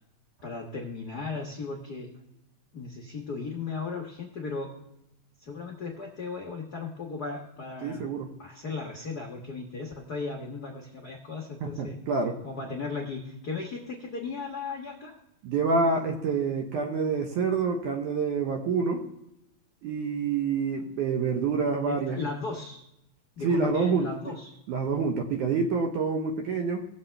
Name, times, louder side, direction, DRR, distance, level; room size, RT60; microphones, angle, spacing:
voice 1, 0.4-2.1 2.7-4.7 5.4-8.1 8.4-12.0 12.4-15.1 21.9-22.8 23.4-24.5, left 4 dB, 80° left, 0 dB, 0.8 m, -36 dB
voice 2, 7.8-8.3 11.6-12.4 15.4-19.1 19.8-22.2 23.4-24.1 24.7-26.9, right 4 dB, 70° right, 3 dB, 2.3 m, -27 dB
19.0 x 7.2 x 3.3 m, 0.83 s
omnidirectional pair, 3.8 m